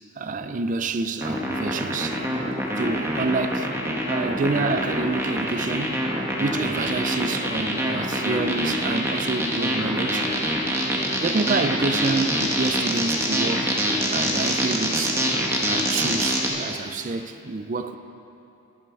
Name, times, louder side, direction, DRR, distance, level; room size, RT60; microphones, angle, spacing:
voice 1, 0.2-2.2 2.8-3.7 4.1-6.0 6.4-10.3 11.0-13.7 14.1-15.3 15.6-18.0, right 3 dB, 40° right, 10 dB, 0.4 m, -28 dB
sound 1, 1.2-16.5, equal, 15° right, 1.1 m, -25 dB
11.0 x 11.0 x 4.8 m, 2.8 s
head